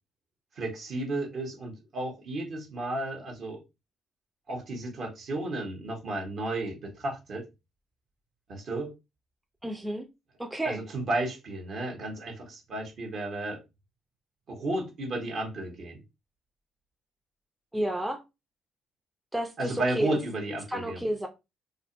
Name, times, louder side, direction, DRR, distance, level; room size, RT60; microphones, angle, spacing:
voice 1, 0.6-3.6 4.5-7.5 8.5-8.9 10.6-13.6 14.5-16.0 19.6-21.0, right 2 dB, 55° right, 0.9 m, -33 dB
voice 2, 9.6-10.1 10.4-10.8 17.7-18.2 19.3-20.2 20.7-21.3, right 1 dB, 10° right, 0.5 m, -31 dB
2.4 x 2.1 x 2.5 m
figure-of-eight pair, 45°, 0 cm